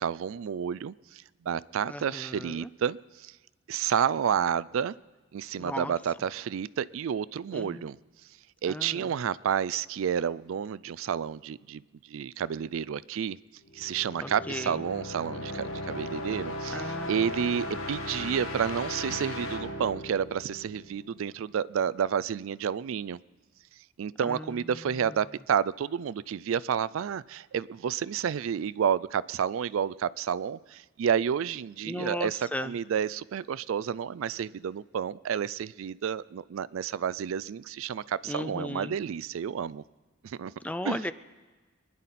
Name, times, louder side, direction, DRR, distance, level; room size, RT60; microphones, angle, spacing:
voice 1, 0.0-3.3 3.7-4.9 5.3-8.0 8.6-13.4 13.7-23.2 24.0-39.8 40.2-40.5 40.8-41.0, right 8 dB, 70° right, 0.3 m, -30 dB
voice 2, 1.9-2.7 5.6-5.9 7.5-7.9 8.7-9.0 14.2-14.8 16.7-17.4 24.2-24.8 31.9-32.7 38.3-38.9 40.6-41.1, left 1 dB, 5° left, 0.4 m, -36 dB
sound 1, 13.7-21.4, left 1 dB, 75° left, 1.5 m, -37 dB
25.5 x 10.5 x 4.2 m
head